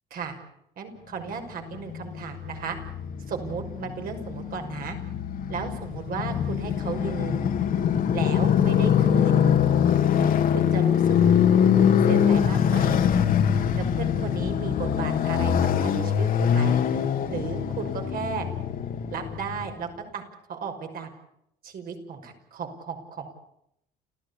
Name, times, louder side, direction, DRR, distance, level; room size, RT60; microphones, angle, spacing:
voice 1, 0.8-2.8 3.3-5.0 5.5-7.4 8.1-9.4 10.5-11.2 12.1-13.1 13.8-15.5 15.8-16.8 17.3-18.5 19.1-20.2 20.5-21.1 21.6-23.3, right 6 dB, 60° right, 5 dB, 5.8 m, -35 dB
Motorcycle, 1.6-19.7, left 8 dB, 55° left, 2.1 m, -23 dB
29.5 x 15.0 x 8.4 m, 0.77 s
cardioid pair, 110°, 17 cm